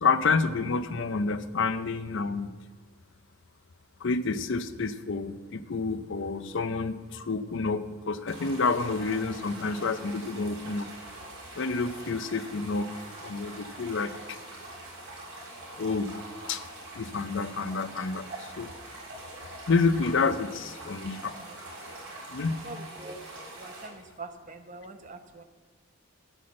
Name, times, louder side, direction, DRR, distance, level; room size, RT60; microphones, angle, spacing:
voice 1, 0.0-2.6 4.0-10.9 11.6-12.9 13.2-14.4 15.8-16.2 16.5-16.6 16.9-18.3 18.6-18.7 19.7-21.4 22.3-22.6, left 4 dB, 60° left, 12 dB, 0.6 m, -29 dB
sound 1, 8.3-23.9, right 1 dB, 60° right, 4.6 m, -44 dB
voice 2, 22.6-23.2 23.5-25.4, right 3 dB, 35° right, 7 dB, 0.8 m, -43 dB
10.5 x 8.1 x 7.6 m, 1.4 s
head